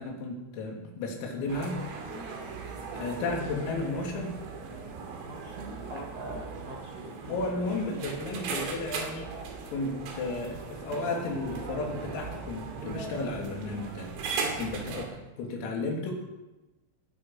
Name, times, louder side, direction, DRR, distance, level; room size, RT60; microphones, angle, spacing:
voice 1, 0.0-1.8 2.9-4.4 5.9-6.1 7.2-9.3 9.7-14.1 14.6-15.1 15.4-16.1, left 3 dB, 90° left, 1 dB, 5.5 m, -33 dB
sound 1, 1.5-15.1, right 4 dB, 80° right, 5.1 m, -38 dB
voice 2, 5.2-7.2 14.4-14.5, right 1 dB, 55° right, -2 dB, 1.8 m, -43 dB
20.5 x 11.5 x 5.7 m, 1.0 s
omnidirectional pair, 5.9 m